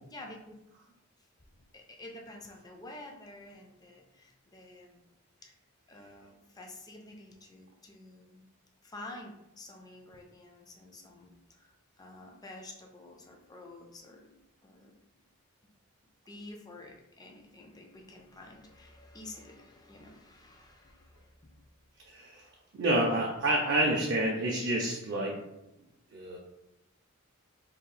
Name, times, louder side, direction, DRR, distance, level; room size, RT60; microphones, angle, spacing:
voice 1, 0.1-0.6 1.7-5.0 5.4-5.6 5.9-8.5 8.8-11.7 12.0-14.3 14.6-14.9 16.3-21.5, left 2 dB, 20° left, 2 dB, 0.4 m, -49 dB
voice 2, 22.1-22.5 22.8-25.4 26.1-26.4, right 1 dB, 50° right, -1 dB, 0.4 m, -28 dB
2.7 x 2.3 x 3.9 m, 0.91 s
head